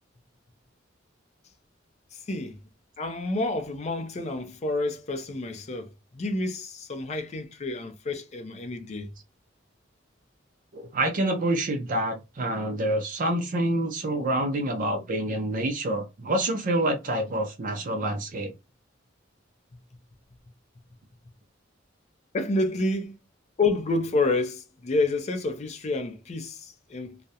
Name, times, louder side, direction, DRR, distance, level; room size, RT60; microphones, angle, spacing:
voice 1, 2.1-2.6 3.0-9.1 22.3-23.1 23.6-27.2, left 2 dB, 35° left, 0.4 m, -29 dB
voice 2, 10.7-18.5, right 1 dB, 45° right, 0.5 m, -27 dB
2.3 x 2.0 x 2.7 m
head